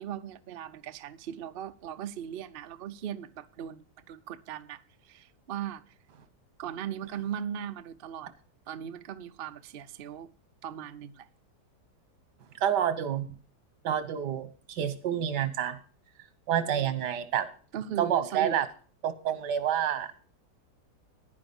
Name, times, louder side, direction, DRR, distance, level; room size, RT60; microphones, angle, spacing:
voice 1, 0.0-5.8 6.6-8.3 8.7-10.3 10.6-11.3 16.7-16.9 17.7-18.6, right 9 dB, 65° right, 0.5 m, -38 dB
voice 2, 12.6-13.3 13.8-15.8 16.5-17.5 18.0-18.6 19.0-20.3, right 9 dB, 90° right, 1.7 m, -28 dB
10.0 x 9.7 x 5.3 m
omnidirectional pair, 1.8 m